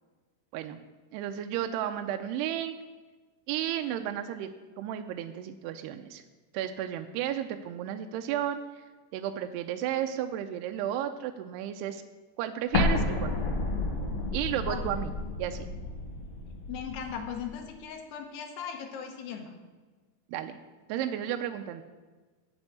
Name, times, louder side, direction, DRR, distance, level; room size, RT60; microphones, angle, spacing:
voice 1, 1.1-2.7 3.5-6.2 6.5-8.8 9.1-12.0 12.4-13.3 14.3-15.1 15.4-15.7 20.3-20.6 20.9-21.8, right 11 dB, 85° right, 7 dB, 2.4 m, -33 dB
Explosion, 12.7-17.5, left 2 dB, 55° left, 2.0 m, -31 dB
voice 2, 16.7-19.6, left 7 dB, 75° left, 4 dB, 2.9 m, -38 dB
9.6 x 7.0 x 8.1 m, 1.3 s
omnidirectional pair, 5.1 m